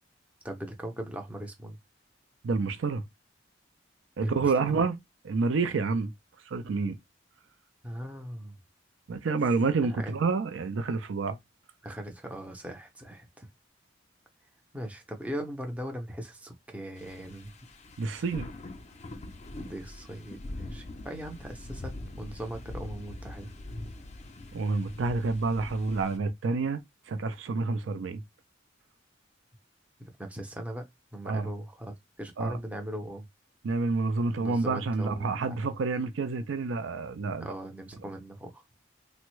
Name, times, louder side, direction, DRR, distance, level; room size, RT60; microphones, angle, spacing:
voice 1, 0.4-1.8 4.2-4.8 7.8-8.6 9.8-10.1 11.8-13.5 14.7-17.5 19.6-23.5 30.0-33.3 34.4-35.6 37.4-38.6, right 1 dB, 10° right, 0.5 m, -39 dB
voice 2, 2.4-3.0 4.2-5.0 5.2-6.1 6.5-7.0 9.1-11.4 18.0-18.5 24.5-26.8 27.1-28.2 31.3-31.5 32.4-32.6 33.6-37.5, right 4 dB, 90° right, 0.4 m, -28 dB
sound 1, 17.0-26.2, left 2 dB, 35° left, 0.5 m, -43 dB
3.4 x 2.1 x 3.0 m
head